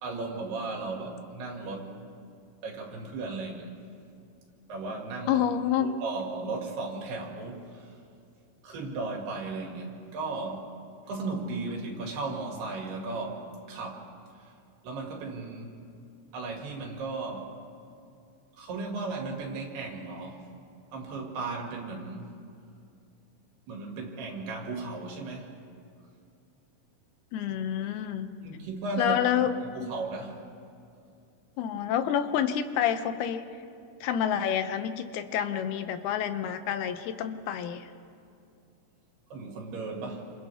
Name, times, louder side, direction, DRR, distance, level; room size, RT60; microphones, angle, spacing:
voice 1, 0.0-2.0 2.6-3.7 4.7-5.4 5.8-8.0 8.6-10.7 11.1-14.1 14.4-14.5 14.8-15.7 16.3-17.6 18.6-20.5 20.9-22.3 23.7-25.5 28.4-29.2 29.7-30.4 39.3-40.3, right 3 dB, 80° right, 0 dB, 4.3 m, -36 dB
voice 2, 5.3-5.9 27.3-28.3 29.0-29.6 31.6-33.5 34.0-37.9, left 9 dB, 80° left, 9 dB, 2.7 m, -28 dB
28.0 x 26.5 x 3.5 m, 2.5 s
omnidirectional pair, 4.6 m